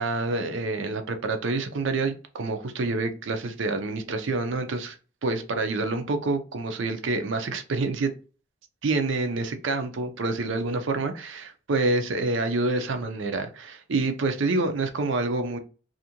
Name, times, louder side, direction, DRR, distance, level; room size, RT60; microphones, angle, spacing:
voice 1, 0.0-5.0 5.2-8.1 8.8-15.6, right 3 dB, 65° right, 0.5 m, -27 dB
2.6 x 2.4 x 2.8 m
head